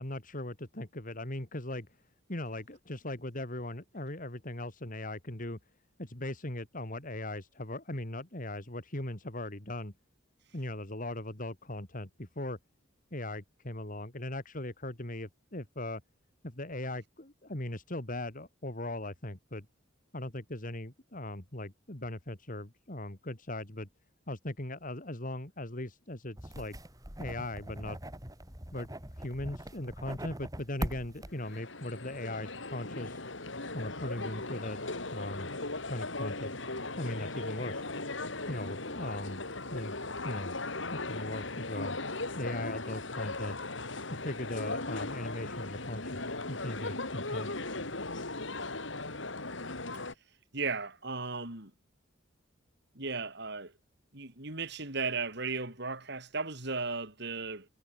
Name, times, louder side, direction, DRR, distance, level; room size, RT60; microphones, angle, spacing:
voice 1, 0.0-1.9 2.3-5.6 6.0-9.9 10.5-12.6 13.1-16.0 16.4-19.7 20.1-23.9 24.3-26.8 27.2-28.0 28.7-28.9 29.2-33.2 33.7-34.8 35.1-35.5 35.8-37.8 38.5-39.4 39.7-40.0 40.2-40.5 40.9-42.0 42.4-43.6 44.1-47.6, left 1 dB, 45° left, 3.1 m, -39 dB
sound 1, 26.4-31.6, right 1 dB, 20° right, 4.5 m, -41 dB
sound 2, 31.3-50.1, left 2 dB, 70° left, 4.6 m, -38 dB
voice 2, 50.5-51.7 53.0-53.7 54.1-57.7, right 4 dB, 60° right, 5.6 m, -36 dB
head